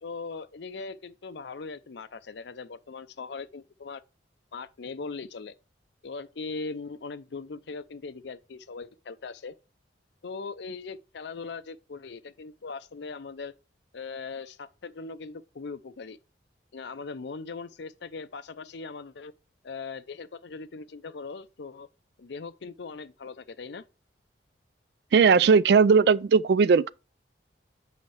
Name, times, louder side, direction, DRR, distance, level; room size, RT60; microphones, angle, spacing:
voice 1, 0.0-4.0 4.5-5.5 6.0-9.5 10.2-13.5 13.9-16.2 16.7-19.3 19.6-21.9 22.2-23.8, left 4 dB, 70° left, 0.5 m, -40 dB
voice 2, 25.1-26.9, right 5 dB, 65° right, 0.3 m, -18 dB
7.9 x 5.7 x 3.3 m
head